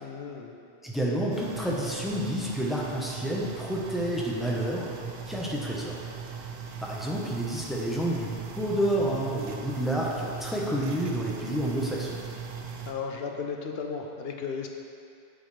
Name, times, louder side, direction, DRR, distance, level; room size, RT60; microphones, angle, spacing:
voice 1, 0.0-0.6 12.9-14.7, left 5 dB, 65° left, 2 dB, 0.9 m, -35 dB
voice 2, 0.8-6.0 6.8-12.2, right 1 dB, ahead, -5 dB, 1.0 m, -29 dB
sound 1, 1.3-12.9, right 6 dB, 65° right, 0.9 m, -39 dB
9.1 x 7.1 x 3.4 m, 2.5 s
omnidirectional pair, 1.1 m